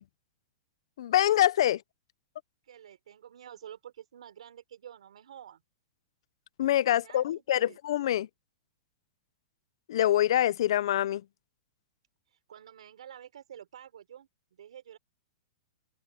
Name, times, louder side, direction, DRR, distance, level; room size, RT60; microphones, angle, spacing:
voice 1, 1.0-1.8 6.6-8.3 9.9-11.2, left 12 dB, 55° left, 0.4 m, -25 dB
voice 2, 2.7-5.6 6.9-7.8 12.5-15.0, right 10 dB, 90° right, 3.6 m, -49 dB
open air
supercardioid pair, 175°, 3 cm